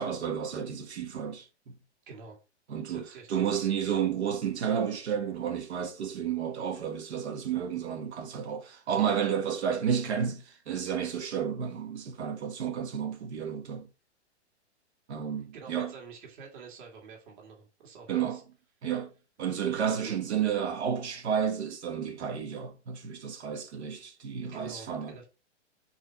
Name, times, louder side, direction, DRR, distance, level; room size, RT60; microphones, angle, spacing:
voice 1, 0.0-1.8 2.7-13.9 15.1-15.9 18.1-18.4 18.8-19.1 19.4-25.1, right 8 dB, 70° right, 1.6 m, -31 dB
voice 2, 2.1-2.4 2.8-3.5 15.5-18.4 20.0-20.2 24.5-25.2, right 5 dB, 45° right, 2.3 m, -47 dB
4.7 x 4.6 x 5.8 m
hypercardioid pair, 165°, 35 cm